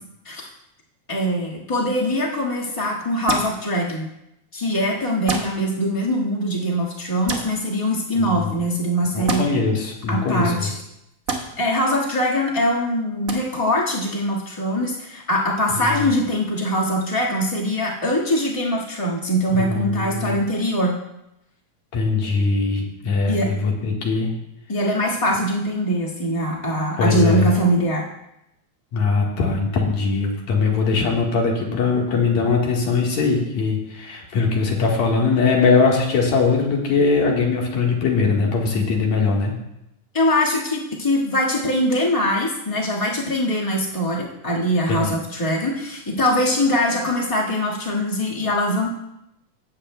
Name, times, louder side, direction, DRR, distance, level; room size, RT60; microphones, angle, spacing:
voice 1, 1.1-4.1 4.5-9.4 10.1-10.7 11.6-21.0 23.3-23.5 24.7-28.0 40.1-48.9, equal, 20° left, -4 dB, 0.8 m, -22 dB
sound 1, 3.3-3.5 5.3-5.5 7.3-7.4 9.3-9.4 11.3-11.4 13.3-13.4, right 4 dB, 55° right, 1.0 m, -24 dB
voice 2, 8.2-8.5 9.1-10.7 15.8-16.0 19.5-20.4 21.9-24.3 27.0-27.5 28.9-39.5 44.9-45.1, left 4 dB, 70° left, -1 dB, 2.7 m, -21 dB
18.0 x 8.0 x 2.2 m, 0.84 s
omnidirectional pair, 3.4 m